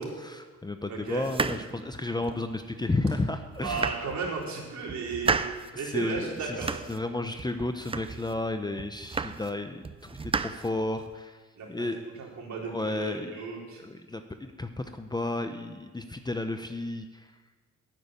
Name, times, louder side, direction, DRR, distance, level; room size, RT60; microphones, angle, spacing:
voice 1, 0.0-3.8 5.8-6.6 6.9-11.4 11.7-12.0 12.7-13.3 13.8-17.3, left 2 dB, 15° left, 7 dB, 0.8 m, -32 dB
voice 2, 0.9-1.2 3.6-5.4 5.8-6.8 11.6-13.8, right 4 dB, 65° right, -2 dB, 3.7 m, -35 dB
sound 1, 1.2-2.5 3.0-3.1 3.5-4.5 4.9-5.7 6.1-7.1 7.4-8.4 8.8-9.6 9.8-11.2, right 4 dB, 20° right, 0.5 m, -33 dB
12.5 x 6.5 x 9.2 m, 1.4 s
cardioid pair, 90°, 30 cm